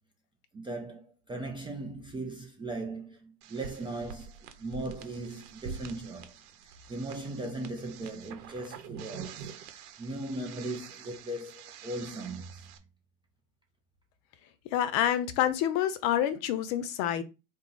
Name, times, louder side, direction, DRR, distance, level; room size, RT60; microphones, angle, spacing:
voice 1, 0.5-6.3 6.9-12.7, right 2 dB, 10° right, 0.4 m, -38 dB
sound 1, 3.4-12.8, right 6 dB, 70° right, 0.9 m, -46 dB
voice 2, 14.7-17.2, left 11 dB, 50° left, 0.8 m, -27 dB
3.9 x 2.6 x 3.8 m
hypercardioid pair, 95°, 48 cm